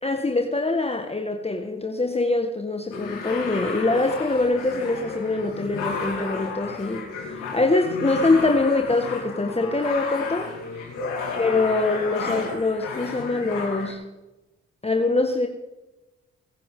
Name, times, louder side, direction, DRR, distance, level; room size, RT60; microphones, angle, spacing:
voice 1, 0.0-10.5 11.4-14.0 14.8-15.5, left 3 dB, 20° left, 3 dB, 1.6 m, -24 dB
sound 1, 2.9-13.9, left 4 dB, 80° left, 3.1 m, -32 dB
21.5 x 9.8 x 3.7 m, 1.0 s
hypercardioid pair, 45°, 31 cm